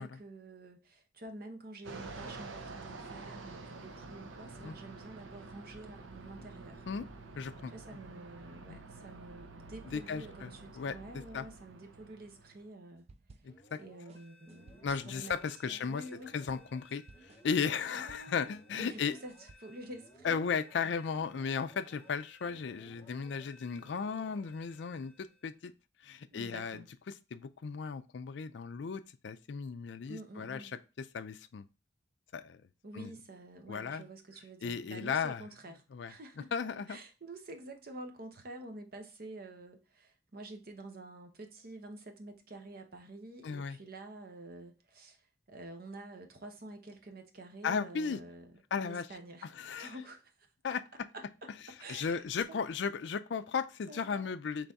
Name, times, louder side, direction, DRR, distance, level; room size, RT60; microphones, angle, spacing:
voice 1, 0.0-6.8 7.7-13.1 13.8-16.3 18.0-20.4 26.3-26.9 30.1-30.8 32.8-36.5 36.9-50.8 51.1-51.2 51.8-52.6 53.9-54.3, right 2 dB, 50° right, 0.8 m, -49 dB
Fixed-wing aircraft airplane, 1.8-12.7, right 3 dB, 90° right, 0.7 m, -48 dB
voice 2, 7.4-7.7 8.7-8.8 9.9-10.9 11.3-11.4 13.4-13.8 14.8-16.0 16.3-17.0 17.4-19.1 20.2-25.7 26.0-26.8 27.3-30.6 31.1-31.7 32.3-32.6 32.9-33.1 33.7-34.0 34.6-35.4 35.9-36.1 36.5-37.0 43.4-43.8 47.6-48.2 48.7-49.1 49.6-49.9 50.6-50.8 51.9-54.7, left 6 dB, 65° left, 0.4 m, -35 dB
sound 1, 13.1-13.8 14.1-18.6 18.9-19.5, right 3 dB, 30° right, 0.3 m, -58 dB
sound 2, 13.5-25.6, left 1 dB, 15° left, 1.1 m, -59 dB
4.0 x 3.3 x 3.5 m
head